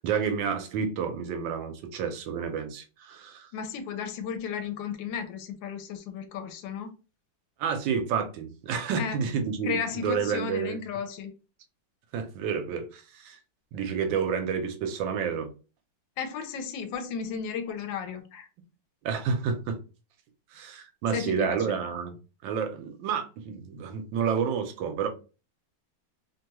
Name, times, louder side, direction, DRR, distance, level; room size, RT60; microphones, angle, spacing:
voice 1, 0.0-3.5 7.6-10.8 12.1-13.4 13.7-15.5 19.0-19.8 20.5-22.1 22.4-25.1, right 6 dB, 90° right, 1.4 m, -30 dB
voice 2, 3.5-6.9 9.0-9.3 9.6-11.3 16.2-18.5 21.1-21.8, left 7 dB, 85° left, 1.3 m, -34 dB
3.3 x 2.2 x 2.9 m
omnidirectional pair, 2.0 m